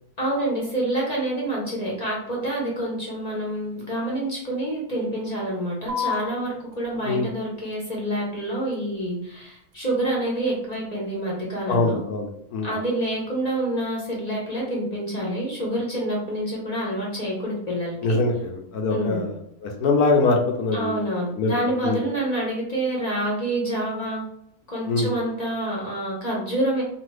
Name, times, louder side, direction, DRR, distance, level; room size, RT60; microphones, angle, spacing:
voice 1, 0.2-12.0 12.6-18.2 18.9-19.2 20.7-24.2 24.7-26.8, right 1 dB, 35° left, -4 dB, 0.7 m, -27 dB
sound 1, 5.9-12.9, left 6 dB, 65° right, 0.9 m, -39 dB
voice 2, 11.7-12.7 18.0-21.0 21.3-21.5 21.8-22.0 24.9-25.1, left 3 dB, 75° left, 2 dB, 1.1 m, -23 dB
2.9 x 2.5 x 3.1 m, 0.77 s
omnidirectional pair, 1.7 m